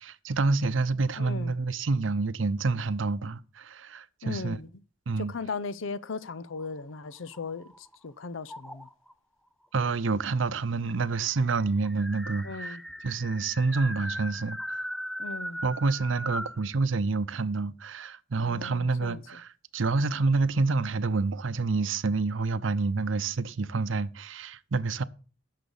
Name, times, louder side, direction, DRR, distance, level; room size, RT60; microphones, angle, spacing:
voice 1, 0.0-4.6 5.1-5.3 9.7-12.8 13.0-14.9 15.6-19.5 19.7-25.0, right 3 dB, 80° right, 0.6 m, -28 dB
voice 2, 1.2-1.5 4.2-4.7 5.2-8.9 12.4-12.8 15.2-15.6 18.4-19.2, left 4 dB, 85° left, 0.6 m, -37 dB
sound 1, 6.6-8.0 8.5-9.1 10.1-10.2 10.5-10.6 10.9-16.6, equal, ahead, 0.4 m, -38 dB
10.0 x 6.6 x 7.0 m
head